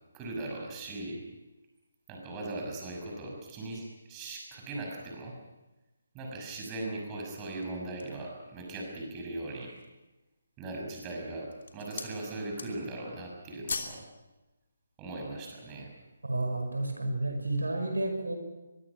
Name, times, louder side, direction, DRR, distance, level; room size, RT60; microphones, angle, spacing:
voice 1, 0.1-1.2 2.1-5.3 6.1-9.8 10.6-14.1 15.0-15.9, right 2 dB, 20° right, 0 dB, 6.0 m, -39 dB
sound 1, 7.3-8.3 8.9-9.0 9.5-10.0 10.7-11.1 11.4-12.2 12.5-13.0 13.3-14.0 14.3-14.5, left 4 dB, 55° left, 3.1 m, -40 dB
voice 2, 16.2-18.3, right 2 dB, 75° right, 4 dB, 5.7 m, -31 dB
24.0 x 22.5 x 6.1 m, 1.1 s
figure-of-eight pair, 145°, 0 cm